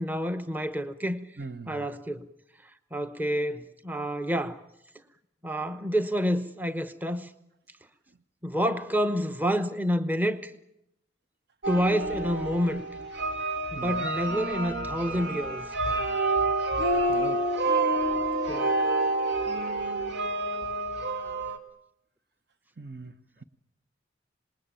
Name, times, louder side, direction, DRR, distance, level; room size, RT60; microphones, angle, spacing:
voice 1, 0.0-1.2 1.7-2.3 2.9-4.6 5.4-7.3 8.4-10.5 11.7-12.9 13.7-15.7 18.5-18.7, equal, 10° right, 0.9 m, -28 dB
voice 2, 1.4-1.8 13.8-14.1 17.1-17.4 22.8-23.1, right 3 dB, 60° right, 1.0 m, -39 dB
sound 1, 11.6-21.6, right 2 dB, 80° right, 2.4 m, -28 dB
26.5 x 20.5 x 8.9 m
head